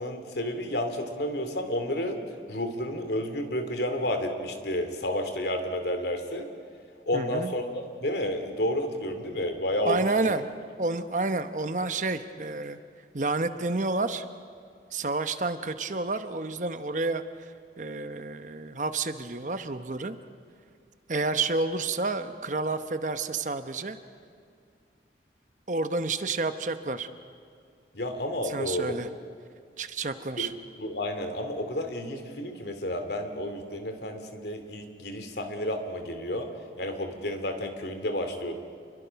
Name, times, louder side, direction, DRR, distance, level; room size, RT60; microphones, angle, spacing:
voice 1, 0.0-2.2 2.5-6.5 7.0-10.1 27.9-29.0 30.4-30.5 30.8-36.5 36.8-38.5, left 1 dB, 70° left, 7 dB, 2.6 m, -31 dB
voice 2, 7.1-7.5 9.8-10.5 10.8-12.8 13.1-14.3 14.9-17.2 17.8-20.2 21.1-24.0 25.7-27.1 28.4-29.1 29.8-30.5, right 3 dB, 45° right, 10 dB, 1.0 m, -29 dB
28.5 x 22.5 x 5.9 m, 2.3 s
head